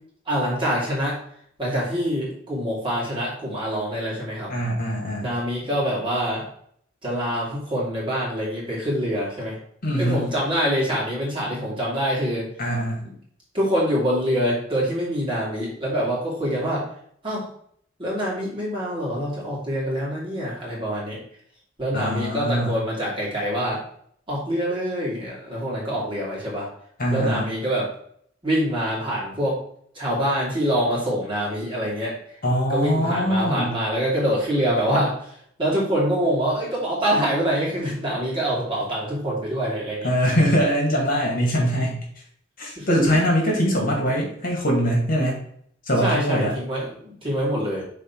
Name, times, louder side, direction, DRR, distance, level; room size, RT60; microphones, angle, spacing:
voice 1, 0.3-1.2 1.6-4.5 5.2-6.5 7.0-9.6 10.0-12.5 13.5-16.9 17.2-17.5 18.0-21.2 21.8-23.8 24.3-26.7 27.1-27.9 28.4-29.6 29.9-32.2 32.7-40.1 42.8-43.2 46.0-47.8, equal, 25° right, -6 dB, 2.8 m, -25 dB
voice 2, 4.5-5.4 9.8-10.2 12.6-13.0 21.9-22.8 27.0-27.5 32.4-33.8 40.0-42.1 42.6-45.4 45.8-46.5, equal, 45° left, -1 dB, 2.1 m, -22 dB
6.6 x 4.1 x 4.6 m, 0.65 s
head